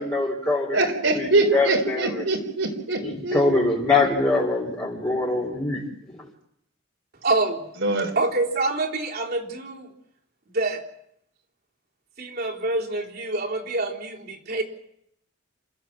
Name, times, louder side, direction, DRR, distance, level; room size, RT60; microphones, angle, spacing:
voice 1, 0.0-0.8 1.1-2.1 3.0-6.2, left 3 dB, 20° left, -5 dB, 3.8 m, -23 dB
voice 2, 0.7-3.7 7.8-8.1, right 2 dB, 70° right, 4 dB, 3.8 m, -24 dB
voice 3, 7.2-7.7 8.2-9.9 10.5-10.8 12.2-14.6, right 2 dB, 55° right, -1 dB, 3.7 m, -26 dB
28.5 x 14.5 x 7.5 m, 0.76 s
head